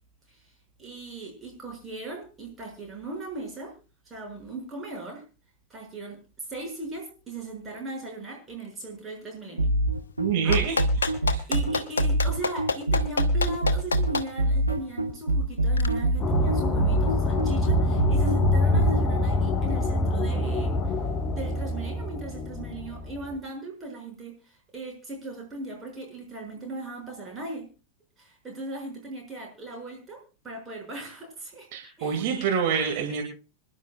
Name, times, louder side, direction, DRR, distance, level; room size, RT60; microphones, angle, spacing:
voice 1, 0.8-3.7 4.0-5.2 5.7-9.7 10.4-10.6 11.1-11.2 11.5-20.9 21.2-27.7 28.2-30.2 30.4-31.7 32.0-32.3, right 2 dB, 20° right, 0 dB, 6.6 m, -38 dB
sound 1, 9.6-19.0, right 1 dB, 85° right, 1.5 m, -24 dB
voice 2, 10.2-10.8 11.3-11.4 31.7-33.2, right 7 dB, 50° right, 3 dB, 2.3 m, -26 dB
Clapping, 10.5-14.2 15.8-15.9, left 4 dB, 70° left, 1.0 m, -27 dB
sound 2, 16.2-23.3, left 2 dB, 25° left, 1.4 m, -26 dB
26.0 x 11.0 x 2.4 m, 0.34 s
figure-of-eight pair, 90°, 0 cm